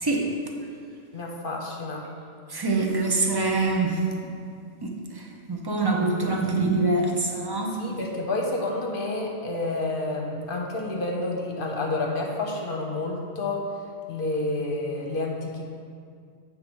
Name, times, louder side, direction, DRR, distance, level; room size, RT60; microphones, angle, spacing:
voice 1, 0.0-0.3 2.5-4.1 4.8-4.9 5.1-7.8, right 3 dB, 25° right, 0 dB, 0.7 m, -24 dB
voice 2, 1.1-2.1 6.2-6.3 7.8-13.7 14.1-15.6, left 2 dB, 50° left, 0 dB, 1.1 m, -29 dB
8.4 x 3.7 x 6.1 m, 2.2 s
omnidirectional pair, 1.2 m